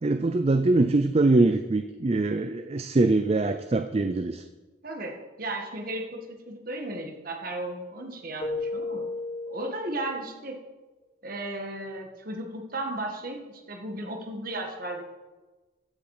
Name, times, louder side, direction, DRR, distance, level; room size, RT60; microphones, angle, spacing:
voice 1, 0.0-4.4, right 2 dB, 30° right, 9 dB, 0.4 m, -23 dB
voice 2, 4.8-9.1 9.5-10.6 11.2-15.1, right 2 dB, 45° right, 2 dB, 1.8 m, -35 dB
Keyboard (musical), 8.4-10.4, left 3 dB, 35° left, 3.3 m, -34 dB
15.0 x 7.2 x 4.9 m, 1.2 s
head